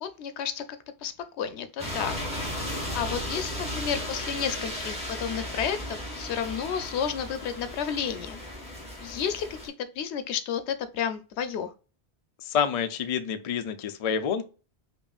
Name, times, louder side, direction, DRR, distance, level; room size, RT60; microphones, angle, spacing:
voice 1, 0.0-2.2 2.5-2.7 2.9-8.4 9.0-11.7, left 8 dB, 90° left, 0.9 m, -32 dB
sound 1, 1.8-9.7, left 1 dB, 5° right, 1.3 m, -35 dB
voice 2, 12.4-14.4, left 7 dB, 55° left, 0.4 m, -28 dB
5.4 x 2.6 x 2.3 m
omnidirectional pair, 1.1 m